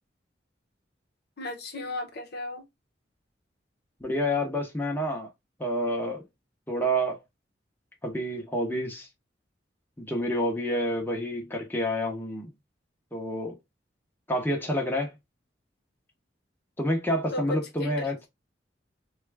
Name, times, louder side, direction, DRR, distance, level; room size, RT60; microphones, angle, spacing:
voice 1, 1.4-2.7 17.3-18.1, left 2 dB, 60° left, 0.9 m, -35 dB
voice 2, 4.0-5.3 5.6-6.2 6.7-7.2 8.0-9.1 10.0-12.5 13.1-13.6 14.3-15.1 16.8-18.3, equal, 10° left, 0.9 m, -28 dB
3.6 x 2.4 x 3.3 m
head